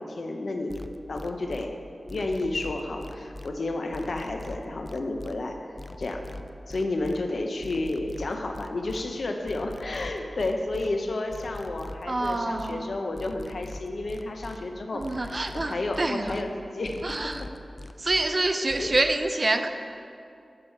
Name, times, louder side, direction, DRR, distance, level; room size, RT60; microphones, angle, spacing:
voice 1, 0.0-1.8 2.1-5.6 6.0-6.2 6.6-17.5 18.8-18.9, left 2 dB, 75° left, 3 dB, 0.7 m, -31 dB
sound 1, 0.7-1.7 2.1-3.5 3.9-5.3 5.8-7.2 7.6-9.0 9.5-10.9 11.3-12.7 13.2-14.6 15.0-16.4 16.8-18.3 18.7-19.1, left 2 dB, 30° left, 0.3 m, -41 dB
voice 2, 12.1-12.9 14.9-16.4 17.0-17.4 18.0-19.7, right 2 dB, 45° right, 7 dB, 0.4 m, -27 dB
7.4 x 4.6 x 6.4 m, 2.5 s
wide cardioid pair, 75°, 0 cm